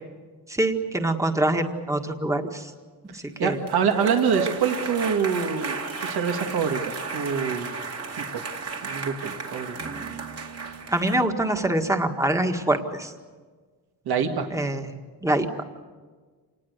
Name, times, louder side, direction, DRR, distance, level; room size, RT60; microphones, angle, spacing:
voice 1, 0.5-2.7 3.1-3.6 10.9-13.1 14.5-14.9 15.2-15.5, right 1 dB, 10° right, 5 dB, 1.7 m, -24 dB
sound 1, 3.4-11.2, right 4 dB, 40° right, 2.5 m, -33 dB
voice 2, 3.4-5.8 6.0-7.7 8.2-8.4 8.8-9.8 14.1-14.5, right 6 dB, 70° right, 5 dB, 2.1 m, -25 dB
28.0 x 19.5 x 8.1 m, 1.4 s
wide cardioid pair, 160°, 39 cm